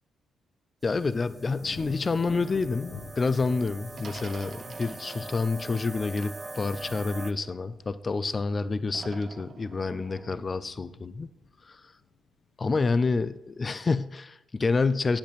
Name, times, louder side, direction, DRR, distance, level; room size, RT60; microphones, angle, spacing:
voice 1, 0.8-11.3 11.7-11.8 12.6-15.2, left 4 dB, 40° left, 14 dB, 0.5 m, -28 dB
sound 1, 0.8-7.3, right 2 dB, 30° right, 0.5 m, -43 dB
sound 2, 1.5-12.8 13.2-13.7, left 4 dB, 70° left, 1.5 m, -50 dB
sound 3, 3.9-8.0 8.9-10.6, right 5 dB, 55° right, 0.9 m, -48 dB
8.7 x 8.5 x 4.2 m, 0.88 s
supercardioid pair, 60°, 0 cm